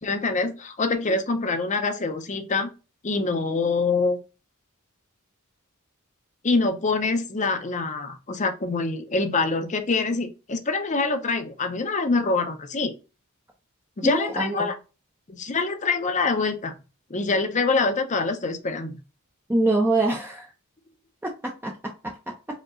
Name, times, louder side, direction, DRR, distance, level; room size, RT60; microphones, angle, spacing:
voice 1, 0.0-2.7 3.0-4.2 6.4-12.9 14.0-14.8 15.3-16.8 17.1-19.0, left 3 dB, 35° left, 0.6 m, -25 dB
voice 2, 14.0-14.7 19.5-20.5 21.2-22.3, right 2 dB, 10° right, 0.6 m, -25 dB
5.1 x 2.9 x 2.5 m
head